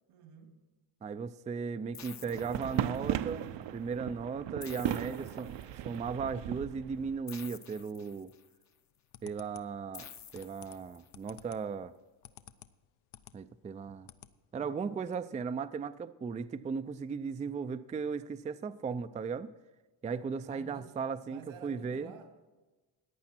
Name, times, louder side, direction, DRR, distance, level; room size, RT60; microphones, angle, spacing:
voice 1, 0.1-0.7 20.5-22.5, right 6 dB, 85° right, 2.5 m, -52 dB
voice 2, 1.0-5.6 5.8-8.3 9.2-10.1 10.3-11.9 13.3-14.1 14.5-19.5 20.0-22.1, right 5 dB, 15° right, 0.3 m, -36 dB
sound 1, 1.9-3.3 4.6-6.0 7.3-8.6 9.9-11.3, left 8 dB, 35° left, 0.7 m, -51 dB
sound 2, 2.2-7.2, right 12 dB, 60° right, 0.6 m, -37 dB
sound 3, 8.7-13.4 13.7-14.3 14.7-14.8 15.0-15.1, left 12 dB, 75° left, 0.7 m, -54 dB
14.5 x 9.6 x 4.3 m
cardioid pair, 95°, 49 cm